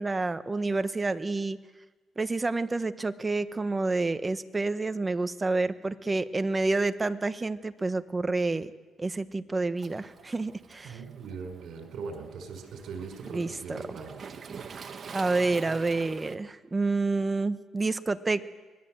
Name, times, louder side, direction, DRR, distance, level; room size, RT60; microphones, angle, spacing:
voice 1, 0.0-1.6 2.2-8.7 9.0-11.0 13.3-13.8 15.1-18.5, right 3 dB, 20° right, 11 dB, 1.1 m, -29 dB
Waves surf, 9.8-16.4, right 6 dB, 50° right, 1.8 m, -46 dB
voice 2, 10.8-14.2, right 5 dB, 70° right, 4 dB, 5.2 m, -40 dB
24.5 x 20.0 x 7.8 m, 1.3 s
cardioid pair, 90°, 0 cm